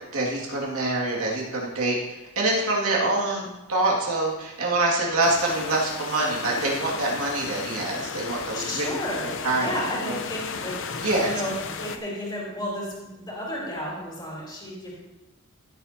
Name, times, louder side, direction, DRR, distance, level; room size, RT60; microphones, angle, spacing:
voice 1, 0.1-2.0 2.4-8.9 9.4-9.7 10.1-10.2 11.0-11.3, right 2 dB, 70° right, -3 dB, 2.4 m, -25 dB
sound 1, 5.2-12.0, left 5 dB, 60° left, 0.8 m, -34 dB
voice 2, 8.5-14.9, equal, 20° left, -5 dB, 3.5 m, -33 dB
15.5 x 8.9 x 2.9 m, 1.0 s
head